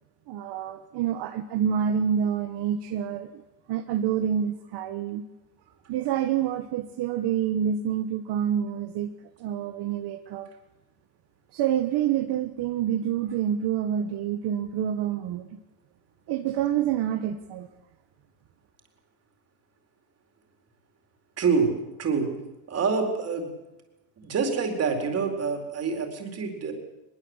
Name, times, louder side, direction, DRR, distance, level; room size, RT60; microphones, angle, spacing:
voice 1, 0.3-3.4 3.7-5.2 5.9-9.1 9.4-10.5 11.5-15.5 16.3-17.7, right 9 dB, 65° right, 6 dB, 1.5 m, -27 dB
voice 2, 21.4-21.7 22.0-22.3 22.7-23.5 24.2-26.7, right 5 dB, 35° right, 4 dB, 4.4 m, -26 dB
23.0 x 22.0 x 8.2 m, 0.99 s
cardioid pair, 170°, 42 cm